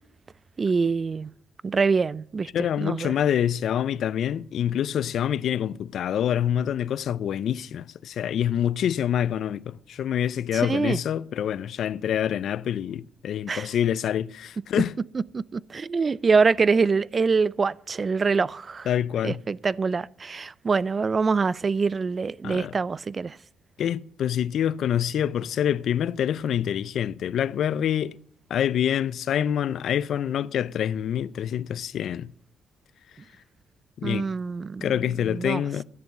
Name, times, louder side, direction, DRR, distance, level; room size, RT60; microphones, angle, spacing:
voice 1, 0.6-1.3 1.6-2.5 2.8-3.1 10.6-11.0 13.5-13.7 15.3-18.9 19.2-23.4 34.0-34.9 35.3-35.6, right 4 dB, 35° right, 0.3 m, -24 dB
voice 2, 2.5-14.9 18.9-19.4 22.4-22.7 23.8-28.2 28.5-32.3 34.0-34.3 34.8-35.8, left 9 dB, 70° left, 0.4 m, -26 dB
11.0 x 7.0 x 5.8 m
cardioid pair, 90°, 0 cm